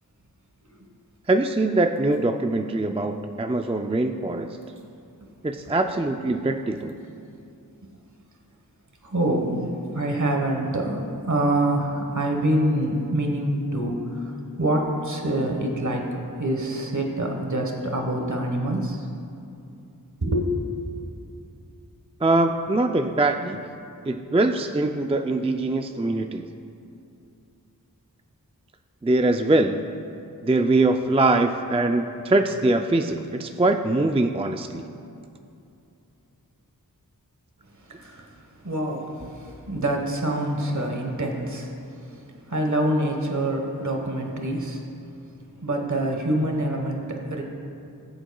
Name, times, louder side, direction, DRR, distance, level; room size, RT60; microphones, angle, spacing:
voice 1, 1.3-4.6 5.4-7.0 22.2-23.6 24.0-26.4 29.0-29.8 30.4-34.8, right 2 dB, 15° right, 5 dB, 0.4 m, -22 dB
voice 2, 9.0-9.7 9.9-16.0 16.4-19.1 20.2-20.5 37.9-41.7 42.0-44.8 45.6-47.4, right 1 dB, 55° right, 1 dB, 1.3 m, -26 dB
18.5 x 7.8 x 2.3 m, 2.6 s
wide cardioid pair, 45°, 36 cm